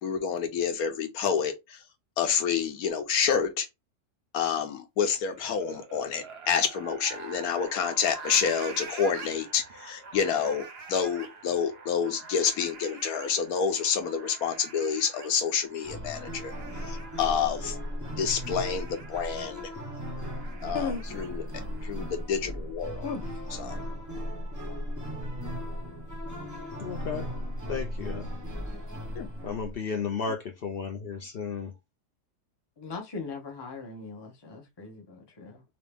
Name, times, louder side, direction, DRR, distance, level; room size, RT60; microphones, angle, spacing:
voice 1, 0.0-1.8 2.2-3.7 4.3-16.5 16.8-17.8 18.2-19.6 20.6-23.1 23.6-23.8 29.1-29.3, left 7 dB, 65° left, 1.1 m, -28 dB
sound 1, 5.1-22.1, right 4 dB, 50° right, 0.8 m, -46 dB
sound 2, 15.8-29.7, equal, 15° right, 0.8 m, -36 dB
voice 2, 23.0-23.4 32.8-35.6, left 4 dB, 25° left, 0.6 m, -37 dB
voice 3, 26.8-27.3 27.7-28.3 29.4-31.7, left 5 dB, 80° left, 0.5 m, -33 dB
3.0 x 2.8 x 3.4 m
omnidirectional pair, 1.8 m